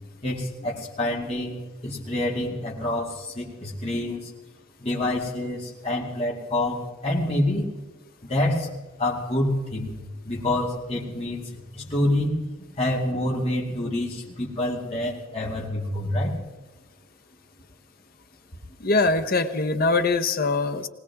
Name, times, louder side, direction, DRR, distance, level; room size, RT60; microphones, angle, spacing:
voice 1, 0.0-4.3 4.8-7.7 8.2-8.7 9.0-10.0 10.2-16.4, left 1 dB, 30° left, -4 dB, 2.5 m, -27 dB
voice 2, 18.8-20.9, left 3 dB, 45° left, 8 dB, 0.9 m, -22 dB
20.5 x 19.0 x 3.6 m, 1.2 s
head